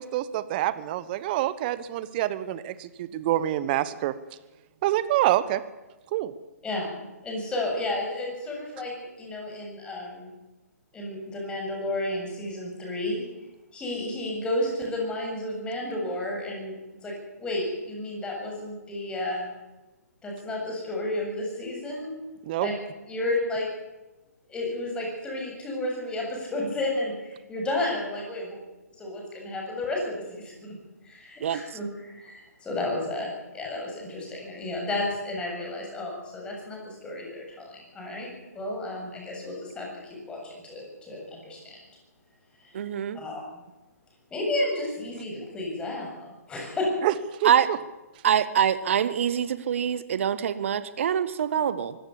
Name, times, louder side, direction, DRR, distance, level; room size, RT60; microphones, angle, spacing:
voice 1, 0.0-4.1 4.8-5.6 6.1-6.3 22.5-22.7 47.0-47.1 47.4-47.8, right 14 dB, 35° right, 15 dB, 1.2 m, -26 dB
voice 2, 6.6-7.0 7.2-10.3 10.9-13.3 13.7-19.5 20.2-22.1 22.6-22.7 23.1-23.7 24.5-28.6 29.0-30.8 31.0-41.8 42.6-42.7 43.1-43.4 44.3-46.9, left 1 dB, 10° left, -1 dB, 7.5 m, -32 dB
voice 3, 42.7-43.2 47.4-47.7 48.2-52.0, right 9 dB, 50° right, 14 dB, 1.4 m, -24 dB
24.5 x 17.0 x 7.2 m, 1.1 s
figure-of-eight pair, 135°, 9 cm